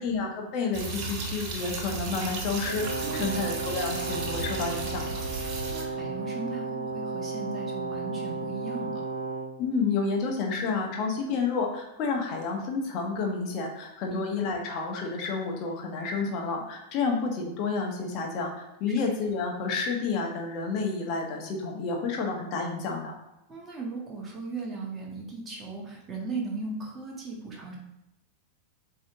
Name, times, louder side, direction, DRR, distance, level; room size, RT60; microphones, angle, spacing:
voice 1, 0.0-5.2 9.6-23.1, left 4 dB, 40° left, 1 dB, 1.5 m, -30 dB
sound 1, 0.7-5.8, right 2 dB, 35° right, 1.2 m, -35 dB
Brass instrument, 2.6-9.5, right 3 dB, 65° right, 1.1 m, -34 dB
voice 2, 3.0-3.3 5.4-9.1 14.1-14.2 23.5-27.8, right 3 dB, 20° right, -2 dB, 1.8 m, -37 dB
7.5 x 3.5 x 3.8 m, 0.91 s
figure-of-eight pair, 90°, 0 cm